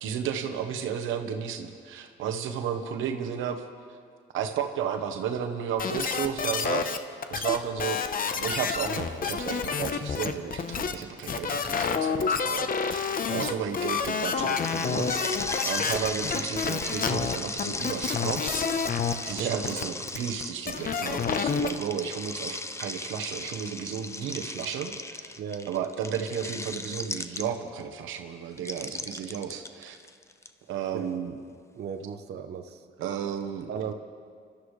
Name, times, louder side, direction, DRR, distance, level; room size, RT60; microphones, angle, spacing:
voice 1, 0.0-3.6 4.3-7.0 7.3-15.3 15.6-18.6 19.2-25.4 25.7-29.9 30.7-31.3 33.0-33.7, right 8 dB, 90° right, 6 dB, 1.1 m, -33 dB
sound 1, 5.8-7.0 7.2-21.7, left 6 dB, 45° left, 0.9 m, -29 dB
sound 2, 14.2-27.8 28.6-30.5, left 2 dB, 15° left, 0.7 m, -36 dB
voice 2, 25.4-25.8 30.9-31.1 31.8-32.7 33.7-33.9, right 8 dB, 55° right, 7 dB, 0.8 m, -34 dB
26.5 x 13.0 x 3.2 m, 2.1 s
cardioid pair, 90°, 20 cm